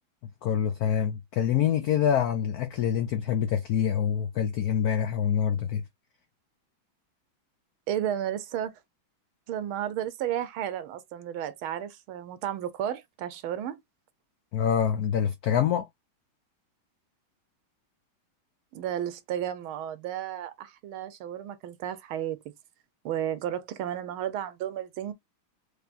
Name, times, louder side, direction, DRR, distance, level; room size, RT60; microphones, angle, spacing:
voice 1, 0.4-5.8 14.5-15.9, left 8 dB, 90° left, 0.8 m, -26 dB
voice 2, 7.9-8.7 9.5-13.8 18.7-22.5 23.0-25.1, right 10 dB, 80° right, 1.6 m, -33 dB
4.8 x 3.3 x 2.5 m
omnidirectional pair, 2.3 m